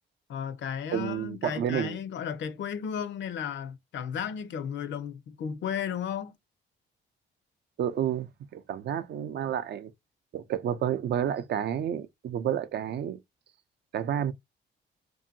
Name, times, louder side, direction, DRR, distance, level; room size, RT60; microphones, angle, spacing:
voice 1, 0.3-6.3, left 8 dB, 65° left, 0.6 m, -34 dB
voice 2, 0.9-2.0 7.8-9.9 10.3-13.2 13.9-14.3, right 9 dB, 60° right, 0.4 m, -30 dB
2.7 x 2.6 x 2.6 m
cardioid pair, 90°, 20 cm